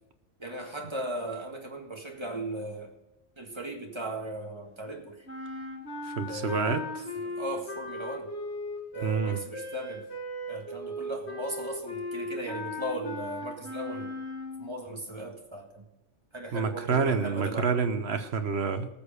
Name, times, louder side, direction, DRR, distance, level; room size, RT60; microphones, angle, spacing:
voice 1, 0.4-2.9 3.4-5.3 6.3-6.8 7.2-8.3 8.9-10.0 10.5-14.1 14.6-15.8 16.3-17.7, right 1 dB, 20° right, 2 dB, 1.8 m, -37 dB
sound 1, 5.3-14.8, left 1 dB, 60° left, 1.9 m, -37 dB
voice 2, 6.1-6.8 9.0-9.4 16.5-18.9, right 5 dB, 60° right, 9 dB, 1.2 m, -28 dB
18.5 x 6.7 x 5.2 m, 0.95 s
omnidirectional pair, 1.3 m